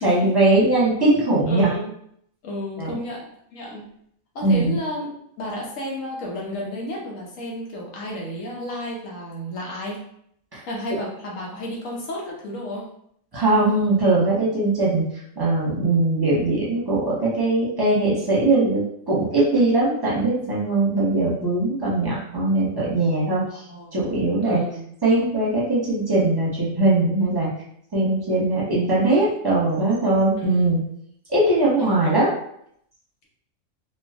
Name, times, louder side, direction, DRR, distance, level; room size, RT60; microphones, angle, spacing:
voice 1, 0.0-1.7 2.8-3.0 4.4-4.8 10.5-10.6 10.9-11.0 13.3-15.0 15.4-23.4 23.9-24.6 25.0-27.5 27.9-30.8 31.3-32.3, right 2 dB, 20° right, -7 dB, 0.9 m, -20 dB
voice 2, 1.5-1.9 2.4-3.9 4.3-10.0 10.6-12.9 23.5-23.9 24.4-24.8 30.4-30.7 31.8-32.1, left 1 dB, 85° left, -3 dB, 1.2 m, -32 dB
3.0 x 2.6 x 2.4 m, 0.70 s
omnidirectional pair, 1.3 m